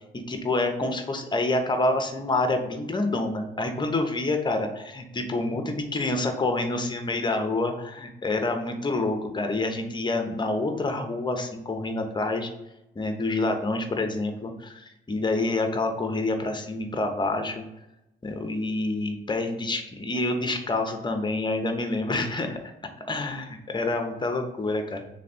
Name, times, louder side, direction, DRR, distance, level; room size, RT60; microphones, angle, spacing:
voice 1, 0.1-12.5 13.0-17.6 18.2-22.6 23.1-25.1, left 2 dB, 25° left, 5 dB, 0.8 m, -27 dB
3.4 x 3.2 x 4.1 m, 0.92 s
cardioid pair, 90°, 20 cm